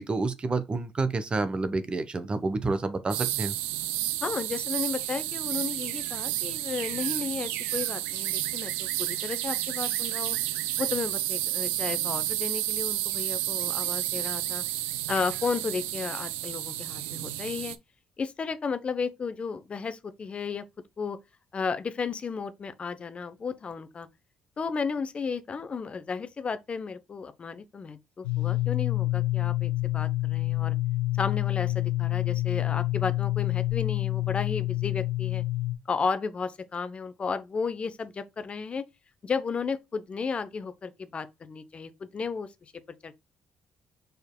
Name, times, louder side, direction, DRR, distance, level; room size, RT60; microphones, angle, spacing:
voice 1, 0.0-3.6, right 3 dB, 35° right, 0.8 m, -29 dB
sound 1, 3.1-17.8, right 15 dB, 85° right, 0.4 m, -31 dB
voice 2, 4.2-10.4 10.8-14.6 15.1-17.8 18.2-20.6 21.0-21.2 21.5-24.1 24.6-30.8 31.2-35.4 35.9-38.8 39.2-42.5 43.0-43.1, left 5 dB, 40° left, 0.7 m, -33 dB
sound 2, 28.2-35.8, left 17 dB, 90° left, 0.7 m, -27 dB
5.2 x 4.5 x 2.2 m
supercardioid pair, 60°, 3 cm